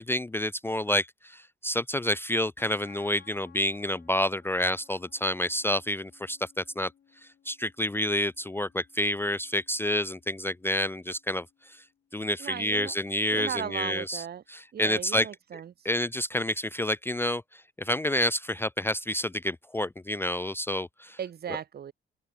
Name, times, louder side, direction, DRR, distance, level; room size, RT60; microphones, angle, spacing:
voice 1, 0.0-6.9 7.5-11.8 12.1-14.2 14.5-15.3 15.8-21.2, left 1 dB, 10° left, 0.5 m, -29 dB
sound 1, 2.6-13.6, left 9 dB, 60° left, 5.1 m, -61 dB
voice 2, 12.4-13.0 13.3-14.4 14.7-15.9 21.2-21.9, right 9 dB, 55° right, 1.3 m, -36 dB
open air
cardioid pair, 90°, 20 cm